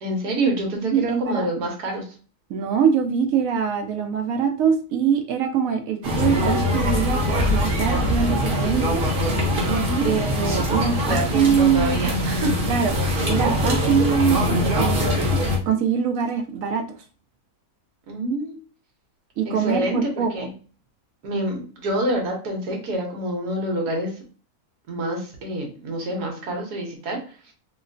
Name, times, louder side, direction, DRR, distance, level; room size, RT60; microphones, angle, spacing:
voice 1, 0.0-2.1 9.9-10.2 10.9-12.5 13.1-13.2 18.1-18.5 19.4-20.5 21.2-24.1 24.9-27.5, right 1 dB, 85° right, 1 dB, 1.5 m, -27 dB
voice 2, 0.9-1.6 2.5-9.0 9.7-12.1 12.7-12.9 13.3-16.8 19.4-20.3, right 7 dB, 70° right, 5 dB, 0.9 m, -23 dB
sound 1, 6.0-15.6, left 1 dB, 40° right, 0.9 m, -22 dB
3.0 x 3.0 x 2.5 m, 0.39 s
omnidirectional pair, 1.6 m